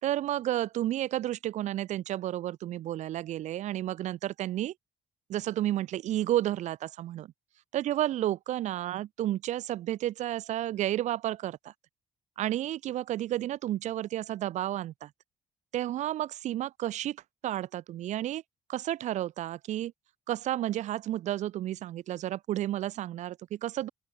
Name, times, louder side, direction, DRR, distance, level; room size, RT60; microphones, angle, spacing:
voice 1, 0.0-4.7 5.3-7.3 7.7-11.7 12.4-15.1 15.7-17.2 17.4-18.4 18.7-19.9 20.3-23.9, right 13 dB, 80° right, 6.9 m, -31 dB
open air
cardioid pair, 120°, 12 cm